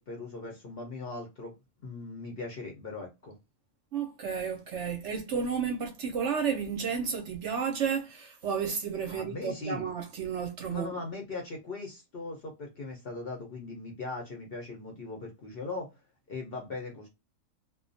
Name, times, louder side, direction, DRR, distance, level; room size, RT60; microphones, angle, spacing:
voice 1, 0.0-1.5 1.8-3.4 9.1-9.9 10.7-15.9 16.3-17.1, left 3 dB, 55° left, 0.7 m, -39 dB
voice 2, 3.9-10.9, right 6 dB, 65° right, 0.8 m, -32 dB
2.3 x 2.2 x 2.5 m
omnidirectional pair, 1.5 m